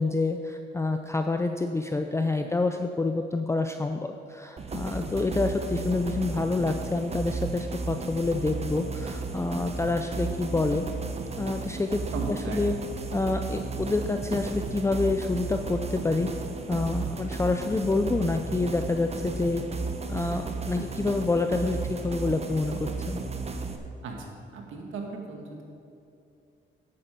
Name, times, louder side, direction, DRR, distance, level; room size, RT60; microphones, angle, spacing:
voice 1, 0.0-10.8 11.4-12.0 12.3-12.8 13.1-16.3 16.7-19.6 20.1-23.2, left 3 dB, 15° left, 5 dB, 0.5 m, -27 dB
sound 1, 4.6-23.8, right 4 dB, 30° right, 1.0 m, -34 dB
voice 2, 12.1-12.7 24.0-25.6, right 3 dB, 80° right, 2 dB, 1.8 m, -36 dB
10.0 x 8.7 x 5.2 m, 2.7 s
cardioid pair, 90°, 20 cm